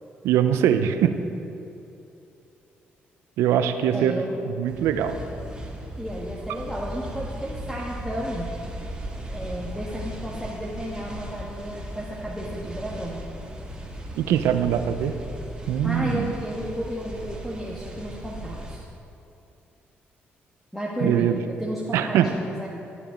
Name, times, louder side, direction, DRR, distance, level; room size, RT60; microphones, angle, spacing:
voice 1, 0.2-1.1 3.4-4.1 4.6-5.2 14.2-15.1 15.7-16.3 21.0-21.4 21.9-22.3, right 10 dB, 85° right, 9 dB, 0.6 m, -22 dB
voice 2, 3.9-4.4 6.0-8.5 9.3-13.2 15.8-18.8 20.7-22.7, equal, ahead, -6 dB, 1.5 m, -32 dB
sound 1, 4.7-18.8, equal, 15° right, 2.3 m, -37 dB
12.0 x 7.1 x 5.2 m, 2.8 s
supercardioid pair, 70°, 4 cm